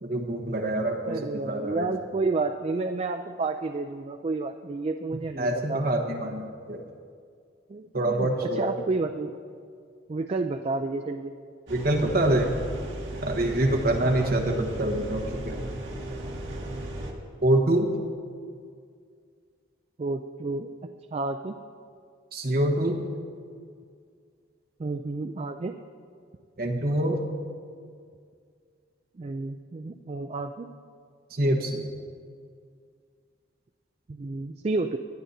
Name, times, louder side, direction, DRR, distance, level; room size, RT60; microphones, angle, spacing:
voice 1, 0.0-1.9 5.4-6.8 7.9-8.6 11.7-12.6 13.2-15.6 17.4-17.9 22.3-23.0 26.6-27.2 31.3-31.9, right 1 dB, 50° right, 2 dB, 1.2 m, -25 dB
voice 2, 1.1-5.8 7.7-9.3 10.1-11.3 14.0-14.3 20.0-21.5 24.8-25.7 29.2-30.7 34.1-35.0, right 3 dB, 30° right, 5 dB, 0.3 m, -30 dB
sound 1, 11.7-17.1, right 1 dB, 65° right, 1.6 m, -35 dB
19.0 x 11.5 x 2.7 m, 2.2 s
head